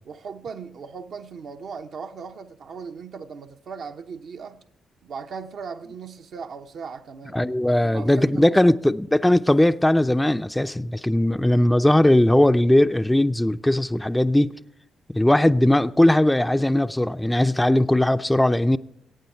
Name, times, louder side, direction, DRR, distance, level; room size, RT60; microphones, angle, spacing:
voice 1, 0.1-4.6 5.0-8.8, right 5 dB, 60° right, 0.9 m, -38 dB
voice 2, 7.3-14.5 15.1-18.8, left 1 dB, 10° left, 0.5 m, -19 dB
22.5 x 9.1 x 4.5 m
hypercardioid pair, 40°, 0 cm